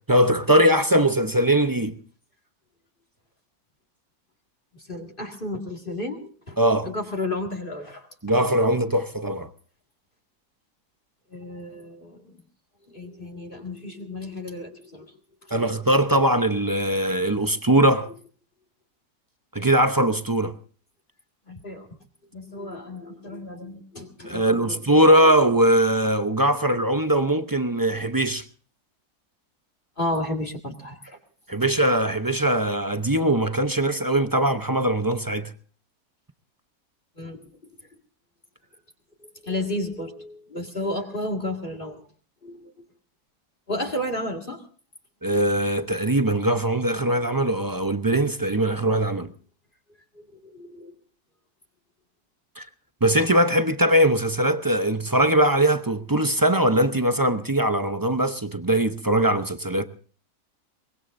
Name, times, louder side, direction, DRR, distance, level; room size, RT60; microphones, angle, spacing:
voice 1, 0.1-2.0 6.6-6.9 8.2-9.5 15.5-18.1 19.5-20.5 24.2-28.4 31.5-35.5 45.2-49.3 52.6-52.7 53.0-59.8, right 1 dB, 25° right, 0.5 m, -21 dB
voice 2, 4.9-6.6 6.8-8.1 11.3-12.4 12.9-15.1 21.5-21.9 22.3-24.8 30.0-31.2 31.5-31.6 37.2-37.4 39.4-42.0 42.4-42.7 43.7-44.6 50.2-50.9, left 1 dB, 35° left, 2.3 m, -32 dB
23.5 x 21.0 x 2.6 m
omnidirectional pair, 1.7 m